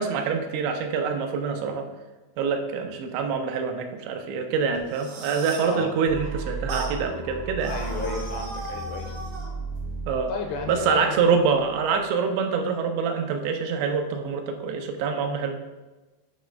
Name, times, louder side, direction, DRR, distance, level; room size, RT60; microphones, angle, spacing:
voice 1, 0.0-1.9 2.4-7.7 10.1-10.3 10.7-15.6, right 5 dB, 90° right, 5 dB, 2.9 m, -25 dB
sound 1, 4.8-5.8 6.7-7.0 7.6-9.5, right 2 dB, 70° right, 1.6 m, -36 dB
voice 2, 5.6-5.9 7.7-9.1 10.3-11.2, left 4 dB, 80° left, 3 dB, 2.8 m, -33 dB
sound 2, 6.1-12.0, right 3 dB, 40° right, 0.7 m, -35 dB
8.6 x 3.2 x 5.0 m, 1.1 s
omnidirectional pair, 4.9 m